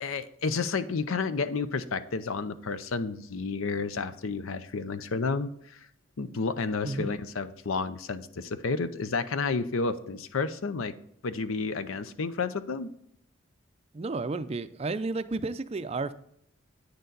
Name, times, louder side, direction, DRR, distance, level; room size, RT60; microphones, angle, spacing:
voice 1, 0.0-5.8 6.2-10.9 11.2-12.9, left 4 dB, 80° left, 13 dB, 0.6 m, -31 dB
voice 2, 13.9-16.1, right 3 dB, 30° right, 12 dB, 0.4 m, -32 dB
9.3 x 6.7 x 3.9 m, 0.70 s
head